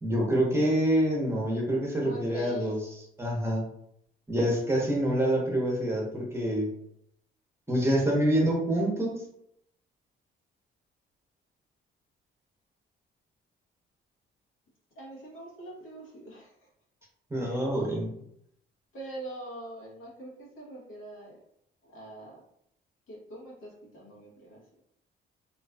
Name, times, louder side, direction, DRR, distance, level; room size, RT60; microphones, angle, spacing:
voice 1, 0.0-2.8 3.2-3.6 4.3-6.7 7.7-9.2 17.3-18.1, right 1 dB, 15° right, -2 dB, 0.7 m, -26 dB
voice 2, 2.0-2.7 15.0-16.7 18.9-21.4 21.8-22.4 23.1-24.6, right 1 dB, 85° left, -3 dB, 0.9 m, -43 dB
2.4 x 2.3 x 2.2 m, 0.74 s
cardioid pair, 90°, 20 cm